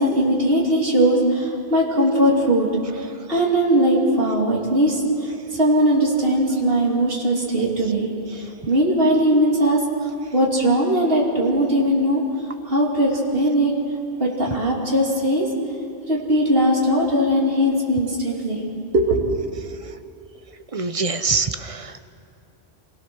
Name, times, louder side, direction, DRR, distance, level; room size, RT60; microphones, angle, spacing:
voice 1, 0.0-2.7 3.3-9.8 10.3-12.2 12.6-13.7 14.2-15.5 16.0-18.6 18.9-19.4, right 1 dB, 55° right, -3 dB, 3.1 m, -19 dB
voice 2, 20.7-22.0, right 4 dB, 35° right, 10 dB, 0.7 m, -24 dB
26.0 x 17.0 x 6.3 m, 2.6 s
omnidirectional pair, 1.1 m